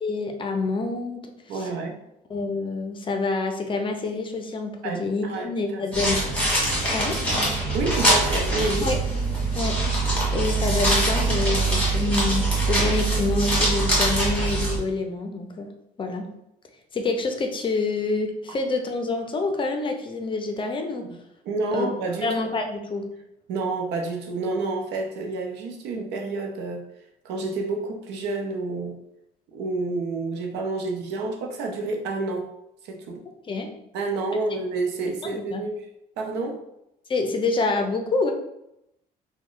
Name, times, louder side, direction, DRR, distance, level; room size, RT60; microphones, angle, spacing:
voice 1, 0.0-1.2 1.5-1.7 2.3-6.2 6.9-7.2 8.8-9.0 9.5-9.8 10.3-15.7 16.0-16.3 16.9-21.1 21.7-21.9 22.2-23.1 33.4-33.7 35.2-35.7 37.1-38.3, left 3 dB, 30° left, 4 dB, 0.5 m, -27 dB
voice 2, 1.5-1.9 4.8-6.0 7.7-8.9 21.0-21.2 21.4-22.3 23.5-26.8 27.2-29.0 29.5-32.5 32.8-33.2 33.9-35.9 36.2-36.6, right 3 dB, 85° right, 3 dB, 0.7 m, -29 dB
sound 1, 5.9-14.8, right 2 dB, 10° left, 1.5 m, -23 dB
3.0 x 2.2 x 3.8 m, 0.82 s
cardioid pair, 110°, 17 cm